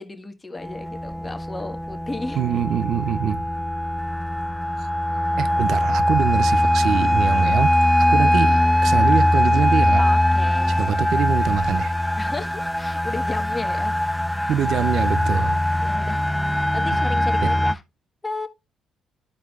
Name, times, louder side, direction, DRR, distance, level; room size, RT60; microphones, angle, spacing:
voice 1, 0.0-2.4 8.0-8.3 10.0-11.0 12.2-14.0 15.8-17.8 18.2-18.5, left 3 dB, 20° left, 1.3 m, -34 dB
sound 1, 0.6-17.7, left 1 dB, ahead, 0.3 m, -21 dB
voice 2, 2.4-3.4 5.4-7.7 8.0-10.0 10.7-11.9 14.5-15.6 17.4-17.5, right 9 dB, 65° right, 0.4 m, -24 dB
13.0 x 4.7 x 2.3 m
cardioid pair, 95°, 0 cm